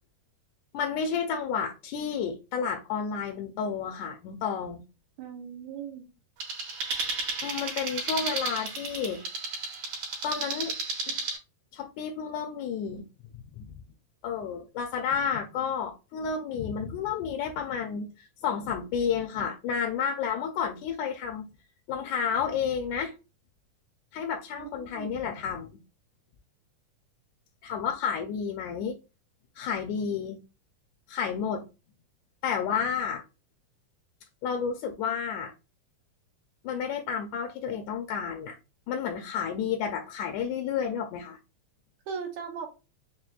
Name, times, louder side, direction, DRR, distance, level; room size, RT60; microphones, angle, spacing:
voice 1, 0.7-4.8 7.4-9.2 10.2-10.7 11.1-11.2 11.7-13.1 13.6-13.7 14.2-21.5 21.9-23.1 24.1-25.8 27.6-29.0 29.6-30.4 31.1-31.6 32.4-33.2 34.4-35.5 36.6-38.6 38.9-41.4, left 7 dB, 80° left, 1.7 m, -31 dB
voice 2, 5.2-6.1 24.6-25.1 42.1-42.7, right 6 dB, 80° right, 1.9 m, -38 dB
sound 1, 6.4-11.4, right 3 dB, 60° right, 2.0 m, -33 dB
5.8 x 2.3 x 2.3 m
omnidirectional pair, 3.7 m